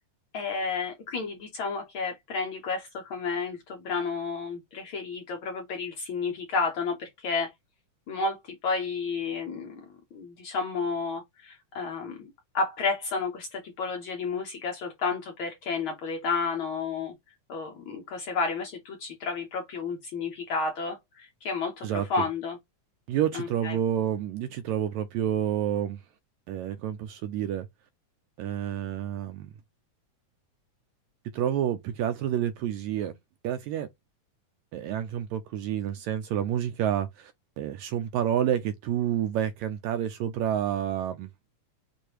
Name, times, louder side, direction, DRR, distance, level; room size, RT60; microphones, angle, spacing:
voice 1, 0.3-7.5 8.1-9.8 10.1-12.3 12.5-17.1 17.5-22.6 23.3-23.8, left 4 dB, 85° left, 1.1 m, -31 dB
voice 2, 21.8-22.3 23.1-26.0 26.5-27.7 28.4-29.5 31.3-33.1 33.4-33.9 34.7-37.3 37.6-41.3, right 10 dB, 80° right, 1.7 m, -29 dB
6.4 x 2.6 x 2.9 m
omnidirectional pair, 3.5 m